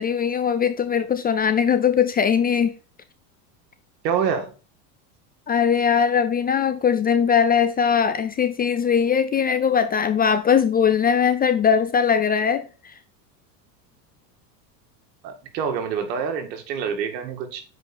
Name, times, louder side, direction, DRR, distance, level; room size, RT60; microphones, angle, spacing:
voice 1, 0.0-2.7 5.5-12.6, left 7 dB, 20° left, 0.4 m, -20 dB
voice 2, 4.0-4.5 15.2-17.6, right 7 dB, 80° right, 2.0 m, -26 dB
7.9 x 5.0 x 4.0 m
supercardioid pair, 105°, 50 cm